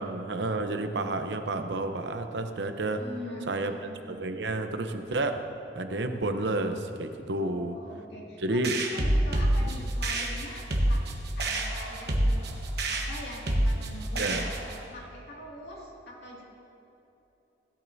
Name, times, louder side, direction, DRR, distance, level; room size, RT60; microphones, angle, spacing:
voice 1, 0.0-3.0 3.5-5.4 5.7-7.8 8.4-8.8 9.6-9.7 14.2-14.5, right 2 dB, 85° right, 7 dB, 0.8 m, -30 dB
voice 2, 3.0-4.0 7.4-11.0 11.4-12.5 12.9-14.5 14.9-16.4, left 1 dB, 70° left, -4 dB, 2.3 m, -43 dB
sound 1, 8.6-14.8, right 1 dB, 65° right, 1.2 m, -27 dB
16.5 x 12.0 x 2.7 m, 3.0 s
head